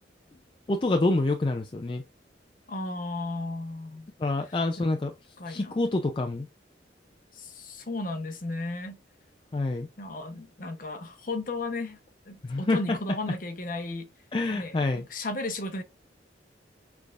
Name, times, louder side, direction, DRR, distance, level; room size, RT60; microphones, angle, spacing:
voice 1, 0.7-2.0 4.2-5.1 5.5-6.5 9.5-9.9 12.4-13.0 14.3-15.0, left 2 dB, 25° left, 0.4 m, -27 dB
voice 2, 2.7-4.1 4.4-5.7 7.3-9.0 10.0-12.0 12.3-14.1 14.5-15.8, left 2 dB, 45° left, 0.9 m, -35 dB
6.1 x 3.4 x 2.4 m
head